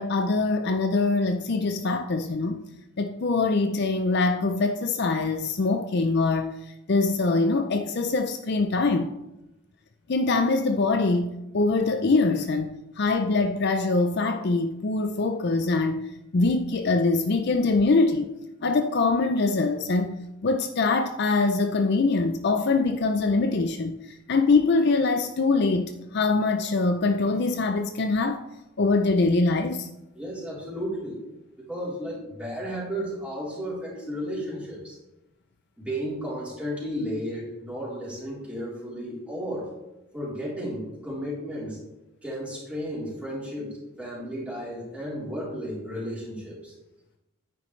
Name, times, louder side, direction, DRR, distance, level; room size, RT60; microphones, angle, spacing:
voice 1, 0.0-2.6 3.0-6.5 6.9-9.1 10.1-16.0 16.3-18.3 18.6-20.1 20.4-23.9 24.3-28.4 28.8-29.9, left 3 dB, 50° left, 0.5 m, -23 dB
voice 2, 30.1-31.2 31.7-35.0 35.8-39.7 40.1-41.8 42.2-46.7, equal, 5° right, 3.5 m, -33 dB
9.6 x 9.4 x 3.2 m
head